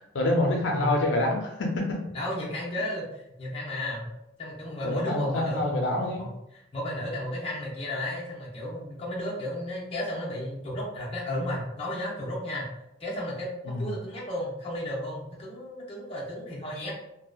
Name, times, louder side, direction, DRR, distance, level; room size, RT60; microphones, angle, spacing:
voice 1, 0.1-2.0 4.8-6.2 13.7-13.9, left 1 dB, 85° left, 0 dB, 0.4 m, -26 dB
voice 2, 2.1-4.1 4.4-5.8 6.2-12.7 13.0-16.9, left 1 dB, 30° left, -5 dB, 0.7 m, -33 dB
2.7 x 2.1 x 2.3 m, 0.84 s
head